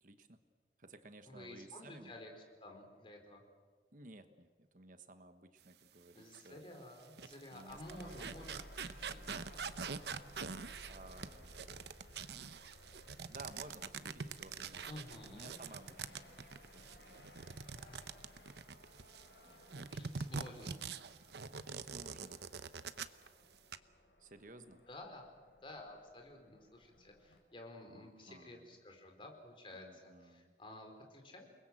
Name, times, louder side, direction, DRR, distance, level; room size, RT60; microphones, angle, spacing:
voice 1, 0.0-0.4 0.8-2.1 3.9-6.7 7.5-9.5 10.9-11.6 13.3-14.9 15.3-16.4 16.7-16.8 17.1-17.2 19.4-19.6 21.5-22.4 24.2-24.8 27.9-28.7 29.7-30.5, right 2 dB, 50° right, 9 dB, 1.2 m, -56 dB
voice 2, 1.3-3.4 6.1-9.4 14.8-15.5 17.8-18.1 19.4-20.8 24.6-31.4, left 1 dB, 30° left, 2 dB, 4.4 m, -53 dB
sound 1, 6.3-6.5 7.0-19.3 19.7-23.3 23.5-23.8, right 5 dB, 70° right, 0.9 m, -45 dB
sound 2, 7.7-27.4, left 1 dB, 85° left, 4.7 m, -59 dB
29.0 x 21.0 x 7.7 m, 1.5 s
head